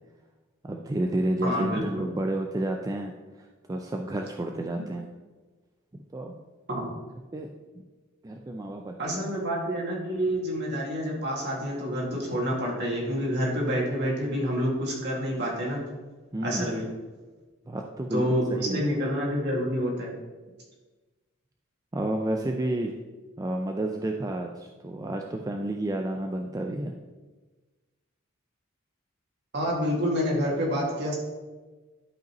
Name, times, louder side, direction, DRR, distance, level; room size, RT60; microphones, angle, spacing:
voice 1, 0.7-3.1 3.4-5.1 5.9-6.4 7.3-7.5 8.2-9.3 16.3-16.9 17.7-18.9 21.9-22.9 23.4-26.9, right 1 dB, 15° right, 2 dB, 0.4 m, -31 dB
voice 2, 1.4-2.0 6.7-6.9 9.0-15.8 16.4-16.9 18.1-20.1 29.5-31.1, equal, 55° right, -2 dB, 2.0 m, -28 dB
11.5 x 5.2 x 3.0 m, 1.3 s
head